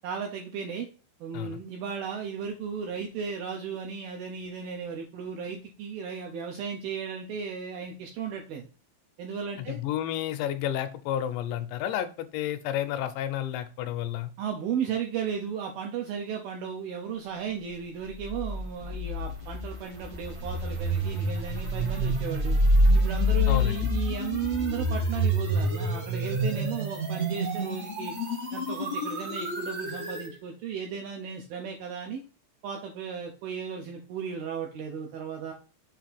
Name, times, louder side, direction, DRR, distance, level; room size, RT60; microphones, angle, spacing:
voice 1, 0.0-0.9 1.2-8.7 9.2-9.8 14.4-22.6 22.9-28.1 28.5-32.2 32.6-35.5, right 7 dB, 80° right, 2 dB, 2.2 m, -35 dB
voice 2, 9.6-14.3 23.5-23.8, left 11 dB, 80° left, 8 dB, 2.9 m, -31 dB
sound 1, 18.2-30.3, equal, 50° right, 1.1 m, -27 dB
7.3 x 2.8 x 5.8 m, 0.35 s
omnidirectional pair, 5.2 m